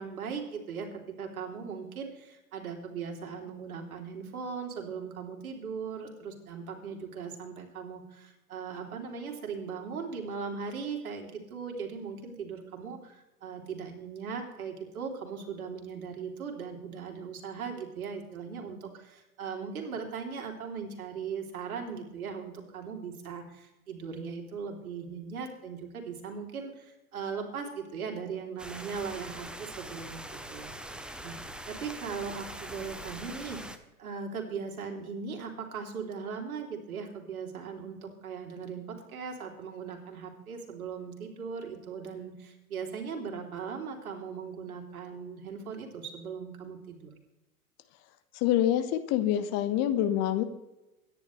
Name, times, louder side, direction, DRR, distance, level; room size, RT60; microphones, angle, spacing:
voice 1, 0.0-31.4 31.7-33.6 34.0-47.1, right 6 dB, 70° right, 2 dB, 3.3 m, -39 dB
sound 1, 28.6-33.8, right 1 dB, ahead, 0.8 m, -42 dB
voice 2, 48.4-50.4, left 11 dB, 35° left, 10 dB, 1.3 m, -26 dB
24.0 x 10.5 x 3.2 m, 0.98 s
figure-of-eight pair, 100°, 45 cm